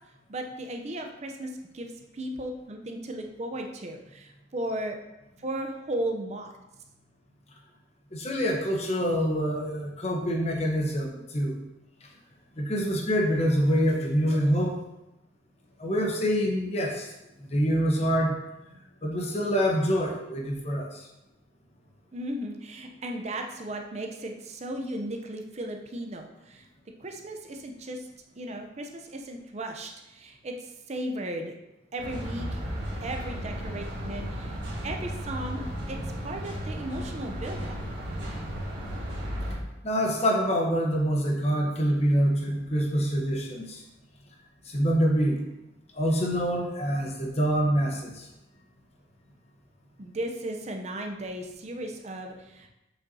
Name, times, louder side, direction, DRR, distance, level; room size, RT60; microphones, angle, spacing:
voice 1, 0.3-5.0 5.4-6.5 22.1-26.7 27.0-28.1 28.4-31.5 31.9-32.6 33.0-34.6 34.8-36.0 36.2-37.8 50.0-52.7, right 1 dB, 35° right, 3 dB, 0.6 m, -36 dB
voice 2, 8.1-11.5 12.6-14.8 15.8-17.1 17.5-18.4 19.0-21.0 39.8-43.8 44.7-45.5 45.9-48.3, equal, 35° left, 1 dB, 0.9 m, -25 dB
sound 1, 32.0-39.6, equal, 75° right, 1.9 m, -34 dB
7.1 x 5.5 x 2.7 m, 0.93 s
head